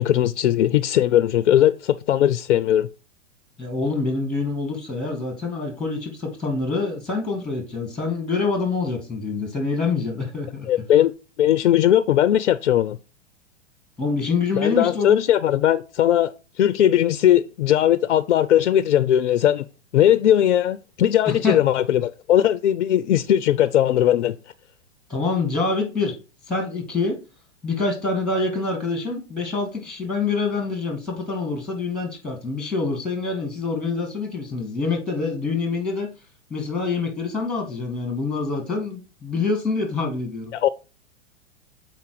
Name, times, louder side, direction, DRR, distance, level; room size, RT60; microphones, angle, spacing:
voice 1, 0.0-2.9 10.7-11.1 11.4-13.0 14.6-16.3 16.6-19.7 19.9-24.4 40.5-40.7, left 11 dB, 70° left, 0.5 m, -19 dB
voice 2, 3.6-10.7 14.0-15.2 21.3-21.6 25.1-26.2 26.5-27.2 27.6-36.1 36.5-40.5, left 4 dB, ahead, 1.9 m, -26 dB
6.8 x 4.4 x 4.8 m
hypercardioid pair, 105°, 36 cm